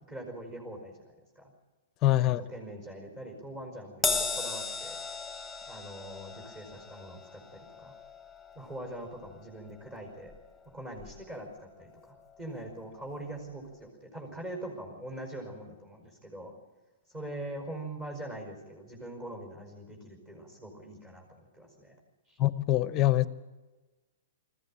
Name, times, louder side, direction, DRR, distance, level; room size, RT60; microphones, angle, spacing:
voice 1, 0.1-1.1 1.3-1.5 2.2-5.0 5.7-7.9 8.5-10.3 10.6-16.5 17.1-22.0 22.3-22.4, right 1 dB, 20° right, 5.1 m, -43 dB
voice 2, 2.0-2.4 22.4-23.3, left 14 dB, 30° left, 0.9 m, -24 dB
Crash cymbal, 4.0-10.7 11.0-11.2 12.3-12.4, left 4 dB, 5° left, 1.9 m, -37 dB
20.5 x 15.0 x 8.9 m
hypercardioid pair, 140°, 0 cm